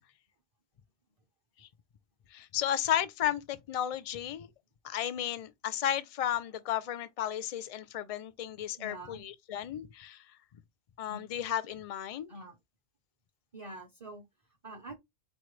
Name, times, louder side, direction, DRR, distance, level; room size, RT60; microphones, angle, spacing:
voice 1, 2.3-4.5 4.8-10.2 10.5-10.6 11.0-12.3, left 11 dB, 55° left, 0.4 m, -34 dB
voice 2, 8.8-9.3 11.1-11.4 12.3-12.6 13.5-15.0, right 1 dB, 35° right, 0.7 m, -46 dB
4.4 x 3.1 x 3.1 m
omnidirectional pair, 1.2 m